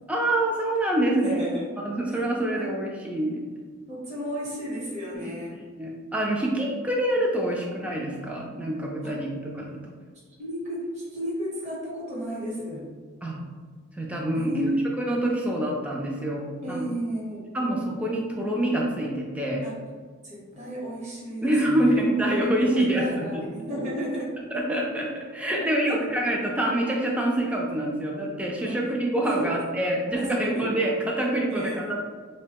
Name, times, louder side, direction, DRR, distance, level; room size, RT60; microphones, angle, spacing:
voice 1, 0.1-1.5 1.8-3.4 5.8-9.8 13.2-13.4 13.9-14.6 15.0-16.8 17.5-19.6 21.4-23.4 24.5-31.8, right 1 dB, 5° right, -2 dB, 0.3 m, -26 dB
voice 2, 1.2-1.7 2.5-2.8 3.9-5.6 9.0-9.2 10.4-12.9 14.3-14.9 15.2-15.4 16.6-17.5 19.6-19.8 20.2-22.0 22.6-24.3 25.5-26.1 28.6-28.8 29.3-29.6 30.2-30.7 31.5-32.0, equal, 30° right, -6 dB, 0.9 m, -33 dB
3.5 x 2.1 x 2.8 m, 1.5 s
head